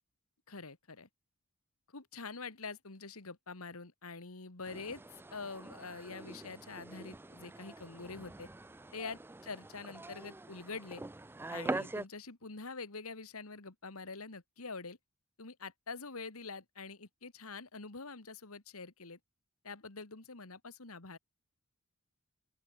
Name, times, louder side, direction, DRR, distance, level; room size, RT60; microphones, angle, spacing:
voice 1, 0.5-1.1 1.9-5.0 5.3-8.5 8.9-11.0 11.5-15.0 15.4-19.2 19.6-21.2, left 4 dB, 70° left, 2.0 m, -45 dB
sound 1, 4.7-12.1, right 2 dB, 10° right, 0.4 m, -44 dB
open air
head